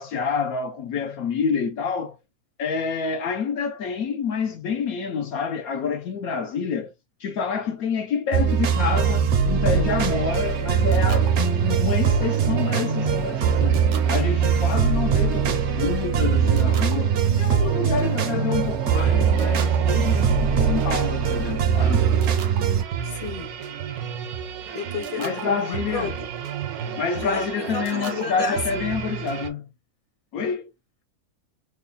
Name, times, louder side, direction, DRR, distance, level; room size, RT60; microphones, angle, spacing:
voice 1, 0.0-2.2 2.6-6.9 7.2-13.8 14.1-22.1 25.2-26.2 27.0-29.7 30.3-30.7, left 6 dB, 70° left, 1.0 m, -28 dB
sound 1, 8.3-22.8, right 7 dB, 60° right, 0.8 m, -21 dB
sound 2, 10.1-29.5, right 8 dB, 75° right, 1.2 m, -33 dB
voice 2, 23.0-23.5 24.7-26.1 27.1-28.9, left 3 dB, 35° left, 0.6 m, -32 dB
3.2 x 2.2 x 3.7 m
omnidirectional pair, 1.6 m